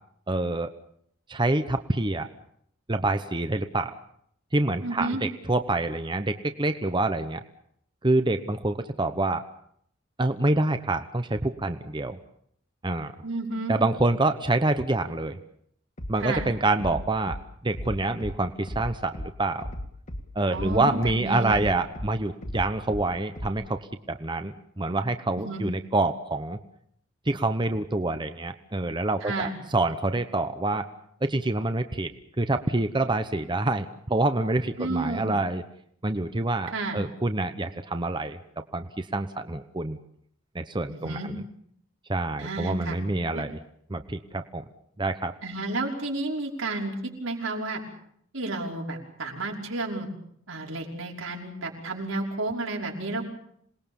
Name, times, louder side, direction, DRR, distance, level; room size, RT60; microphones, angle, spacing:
voice 1, 0.3-0.7 1.3-2.3 2.9-3.9 4.5-7.4 8.0-9.4 10.2-12.2 12.8-13.1 13.7-15.4 16.1-17.4 17.6-19.7 20.3-23.8 24.1-26.6 27.3-30.9 31.2-32.1 32.4-35.6 36.0-38.4 38.7-40.0 40.5-41.3 42.1-43.6 43.9-44.6 45.0-45.3, right 2 dB, 25° right, 9 dB, 1.0 m, -26 dB
voice 2, 4.8-5.2 13.2-13.7 16.2-16.5 20.5-21.7 25.4-25.6 29.2-29.6 34.8-35.3 36.7-37.0 40.9-41.3 42.4-43.0 43.3-43.4 45.4-47.8 48.3-50.1 50.5-53.3, right 2 dB, 90° right, 0 dB, 5.5 m, -31 dB
Bass drum, 16.0-16.5 16.8-17.4 17.7-18.3 18.7-19.3 19.6-20.2 20.5-21.2 21.5-22.1 22.4-23.0 23.4-23.5, equal, 40° left, 2.2 m, -35 dB
27.0 x 20.0 x 7.2 m, 0.69 s
head